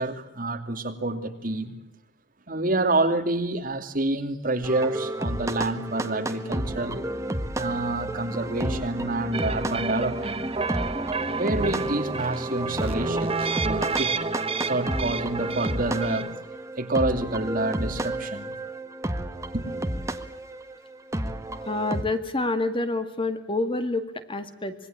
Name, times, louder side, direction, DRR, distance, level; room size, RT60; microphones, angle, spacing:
voice 1, 0.0-1.7 2.5-7.0 7.6-10.4 11.3-14.1 14.7-16.3 16.8-18.5 19.5-19.7, right 2 dB, 45° right, 2.8 m, -28 dB
sound 1, 4.6-22.0, right 1 dB, 15° right, 1.6 m, -31 dB
sound 2, 9.3-16.3, right 4 dB, 30° right, 1.3 m, -30 dB
voice 2, 21.7-24.7, left 2 dB, 30° left, 2.0 m, -27 dB
26.0 x 21.5 x 8.9 m
head